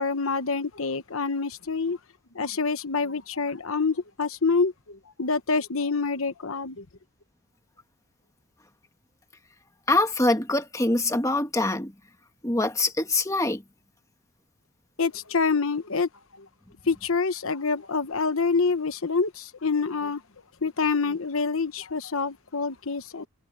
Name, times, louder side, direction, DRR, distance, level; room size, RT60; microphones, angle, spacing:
voice 1, 0.0-2.0 2.3-6.8 15.0-16.1 16.9-20.2 20.6-23.3, left 4 dB, 65° left, 1.1 m, -26 dB
voice 2, 9.9-11.9 12.4-13.6, left 2 dB, 15° left, 1.5 m, -24 dB
head